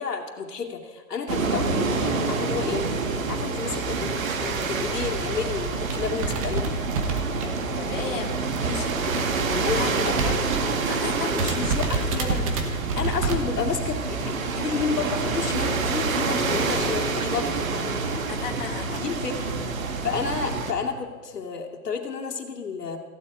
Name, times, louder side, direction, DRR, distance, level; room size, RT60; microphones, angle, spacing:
voice 1, 0.0-2.8 3.3-4.1 4.4-6.7 8.6-10.1 10.9-11.0 11.3-17.7 19.0-19.6 20.0-23.0, left 5 dB, 90° left, 1 dB, 2.5 m, -31 dB
sound 1, 1.3-20.7, right 4 dB, 60° right, 1.8 m, -27 dB
sound 2, 4.5-4.8 5.3-5.4 5.6-7.9 8.2-10.8 11.1-11.2 11.4-13.4, right 4 dB, 20° right, 1.1 m, -28 dB
voice 2, 7.8-8.7 9.7-10.5 10.8-11.5 18.3-19.0, left 6 dB, 35° left, 0 dB, 1.8 m, -34 dB
15.0 x 7.5 x 9.1 m, 1.5 s
hypercardioid pair, 165°, 47 cm